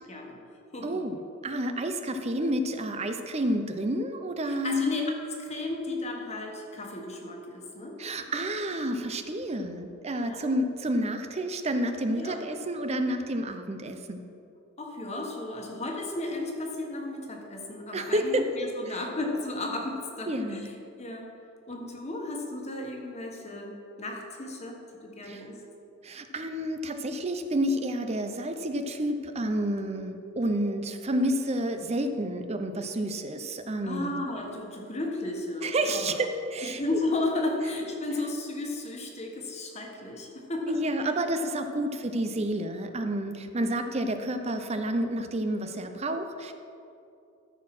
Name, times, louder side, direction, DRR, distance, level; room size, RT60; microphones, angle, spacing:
voice 1, 0.1-0.4 0.7-1.1 4.4-5.1 5.4-7.9 10.2-10.4 12.1-12.4 14.8-21.3 21.7-25.6 33.8-36.2 36.6-40.8 41.7-41.8, left 2 dB, 30° left, 1 dB, 1.4 m, -34 dB
voice 2, 0.8-4.8 8.0-14.2 17.9-18.4 18.8-19.0 20.3-20.7 25.2-25.4 26.0-34.1 35.6-36.8 40.7-46.5, right 1 dB, 30° right, 7 dB, 0.6 m, -30 dB
14.0 x 4.8 x 6.0 m, 2.6 s
head